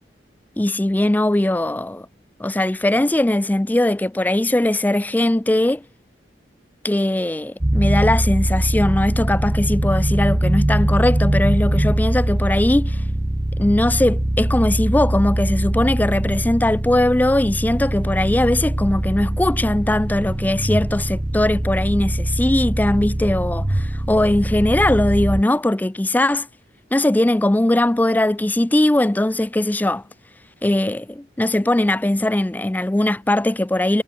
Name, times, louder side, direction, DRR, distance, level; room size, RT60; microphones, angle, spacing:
voice 1, 0.6-2.1 2.4-5.8 6.8-13.0 13.6-26.5 26.9-30.0 30.6-34.0, left 1 dB, 10° left, 0.3 m, -20 dB
sound 1, 7.6-25.4, right 1 dB, 20° right, 0.8 m, -22 dB
head